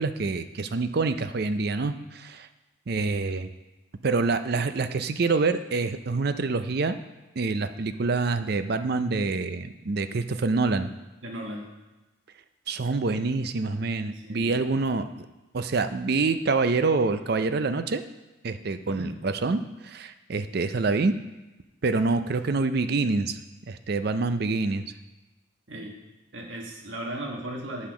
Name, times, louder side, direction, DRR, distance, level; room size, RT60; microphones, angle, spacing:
voice 1, 0.0-2.5 2.9-3.5 4.0-7.0 7.4-10.9 12.7-15.3 15.5-18.0 18.4-21.1 21.8-23.4 23.7-24.9, right 3 dB, 50° right, 10 dB, 0.5 m, -26 dB
voice 2, 11.2-11.7 14.1-14.6 18.9-19.1 25.7-25.9 26.3-27.9, right 1 dB, 70° right, 1 dB, 1.4 m, -36 dB
8.5 x 5.7 x 6.0 m, 1.1 s
head